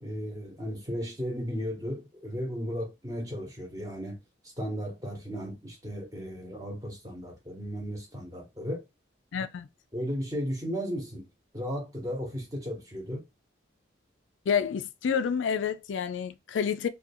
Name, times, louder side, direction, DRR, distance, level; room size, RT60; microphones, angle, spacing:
voice 1, 0.0-4.2 4.4-8.8 9.9-11.3 11.5-13.2, equal, 20° right, 0.8 m, -35 dB
voice 2, 9.3-9.7 14.5-16.9, left 7 dB, 85° left, 0.4 m, -29 dB
2.4 x 2.3 x 2.6 m
head